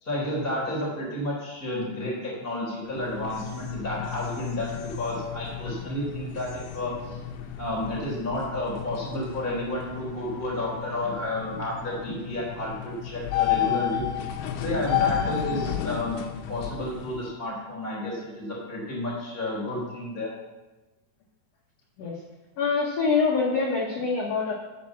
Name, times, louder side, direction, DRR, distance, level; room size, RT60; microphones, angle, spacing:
voice 1, 0.0-7.2 7.6-14.0 14.6-16.2 16.5-20.3, left 1 dB, 15° left, -5 dB, 3.8 m, -31 dB
sound 1, 2.8-17.3, left 10 dB, 80° left, 2.8 m, -32 dB
voice 2, 22.6-24.5, left 4 dB, 65° left, -2 dB, 1.6 m, -25 dB
14.0 x 5.2 x 7.2 m, 1.1 s
omnidirectional pair, 4.7 m